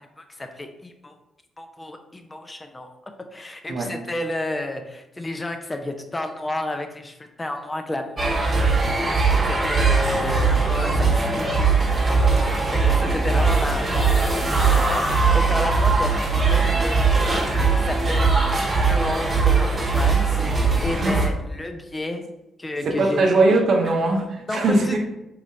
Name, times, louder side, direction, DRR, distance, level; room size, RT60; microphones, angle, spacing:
voice 1, 0.2-1.1 1.6-2.9 3.2-18.4 18.7-20.3 20.6-22.3 22.6-23.2 23.9-24.0 24.5-25.0, left 1 dB, 20° left, 6 dB, 0.5 m, -32 dB
sound 1, 8.2-21.3, right 4 dB, 30° right, 1.1 m, -20 dB
voice 2, 22.8-25.0, right 2 dB, 55° right, 1 dB, 0.7 m, -20 dB
4.7 x 3.1 x 2.7 m, 0.93 s
figure-of-eight pair, 40°, 0 cm